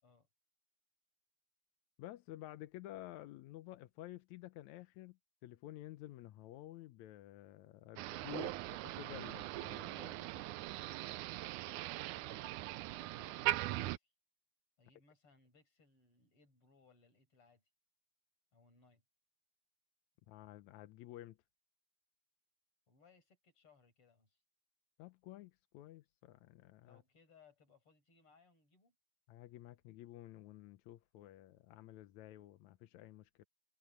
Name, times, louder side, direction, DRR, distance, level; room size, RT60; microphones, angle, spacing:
voice 1, 2.0-8.5 9.0-10.4 20.3-21.4 25.0-27.0 29.3-33.4, left 15 dB, 75° left, 1.7 m, -52 dB
Motor vehicle (road), 8.0-14.0, right 17 dB, 85° right, 1.8 m, -40 dB
voice 2, 8.3-8.8 10.7-11.0 12.1-14.1 14.8-17.6 18.5-19.0 22.9-24.4 26.8-28.9, left 5 dB, 40° left, 6.2 m, -67 dB
omnidirectional pair, 4.1 m